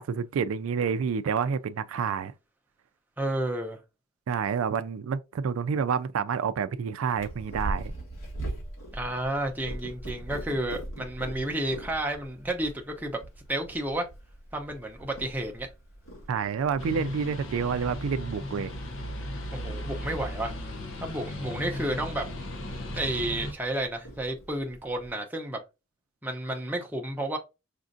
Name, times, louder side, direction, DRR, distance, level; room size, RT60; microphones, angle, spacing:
voice 1, 0.0-2.3 4.3-7.9 16.3-18.7, right 6 dB, 85° right, 0.3 m, -28 dB
voice 2, 3.2-3.8 8.9-13.2 13.5-14.1 14.5-15.7 19.5-20.5 21.0-22.3 22.9-25.6 26.2-27.4, right 1 dB, 10° right, 0.6 m, -31 dB
Purr, 7.2-25.1, right 1 dB, 85° left, 1.7 m, -42 dB
sound 1, 16.8-23.5, left 1 dB, 70° left, 0.7 m, -36 dB
5.0 x 2.4 x 2.5 m
head